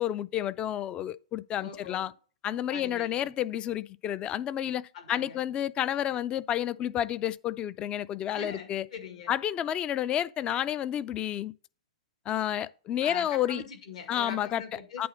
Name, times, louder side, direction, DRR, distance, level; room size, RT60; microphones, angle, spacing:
voice 1, 0.0-2.1 2.4-8.8 9.3-11.5 12.3-13.6 14.1-14.6 15.0-15.1, left 11 dB, 25° left, 0.3 m, -30 dB
voice 2, 1.6-2.1 2.7-3.3 4.9-5.4 8.3-9.3 13.0-15.1, left 5 dB, 65° left, 2.0 m, -42 dB
8.6 x 3.7 x 6.1 m
hypercardioid pair, 110°, 4 cm